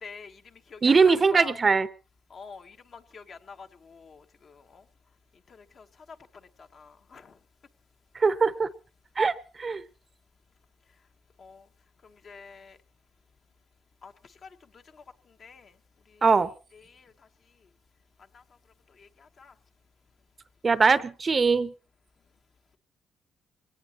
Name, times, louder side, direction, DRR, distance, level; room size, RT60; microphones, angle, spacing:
voice 1, 0.0-0.4 0.7-1.5 2.3-4.8 5.8-5.9 6.7-7.3 11.4-11.6 12.2-12.8 14.0-14.1 14.4-14.5 14.9-15.0 15.4-15.7 16.7-17.1 18.3-18.4 19.0-19.5, left 5 dB, 50° left, 6 dB, 1.3 m, -46 dB
voice 2, 0.8-1.9 8.2-8.7 9.2-9.8 16.2-16.5 20.6-21.7, right 4 dB, 35° right, 15 dB, 0.8 m, -21 dB
23.0 x 18.0 x 3.0 m, 0.35 s
cardioid pair, 90°, 0 cm